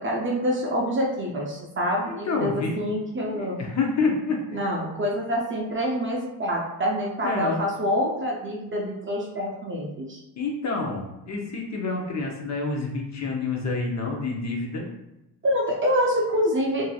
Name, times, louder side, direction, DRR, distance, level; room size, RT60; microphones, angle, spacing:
voice 1, 0.0-3.6 4.5-10.2 15.4-16.9, equal, 30° right, -2 dB, 0.5 m, -26 dB
voice 2, 2.1-2.8 3.2-4.6 7.2-7.6 10.4-14.9, left 3 dB, 40° left, 0 dB, 0.6 m, -28 dB
2.9 x 2.6 x 2.3 m, 0.93 s
cardioid pair, 115°, 45 cm